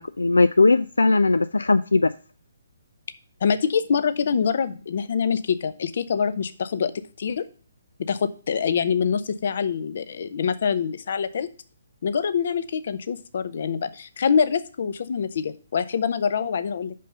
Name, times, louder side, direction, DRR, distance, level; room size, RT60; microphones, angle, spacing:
voice 1, 0.0-2.1, left 3 dB, 80° left, 0.3 m, -19 dB
voice 2, 3.4-6.9 7.2-7.4 8.1-11.5 12.0-16.9, left 6 dB, 55° left, 0.7 m, -25 dB
5.5 x 5.3 x 6.5 m
figure-of-eight pair, 140°, 0 cm